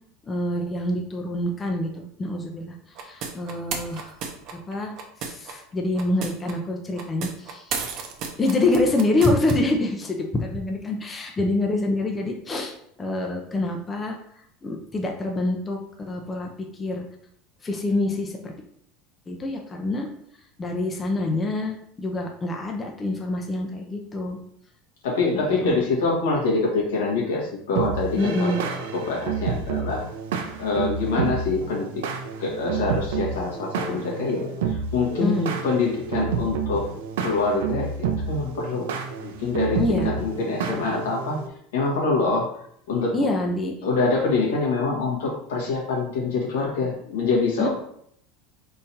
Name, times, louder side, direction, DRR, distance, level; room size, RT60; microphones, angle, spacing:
voice 1, 0.3-4.2 4.5-7.8 8.4-14.2 14.6-17.1 17.6-18.5 19.3-20.1 20.6-24.4 25.3-25.8 28.2-28.6 35.2-35.5 39.8-40.1 43.1-43.7 47.6-47.7, left 2 dB, 25° left, 2 dB, 0.7 m, -26 dB
sound 1, 2.9-5.5 5.9-6.5 6.9-9.5, right 6 dB, 55° right, 0.8 m, -33 dB
voice 2, 25.0-28.6 28.9-30.0 30.6-31.9 32.4-36.8 37.2-38.9 39.2-41.4 41.7-42.5 42.9-43.1 43.8-47.7, left 3 dB, 85° left, -2 dB, 1.5 m, -25 dB
sound 2, 27.7-41.5, right 6 dB, 85° right, 0.6 m, -29 dB
4.1 x 3.8 x 2.8 m, 0.68 s
supercardioid pair, 105°, 0 cm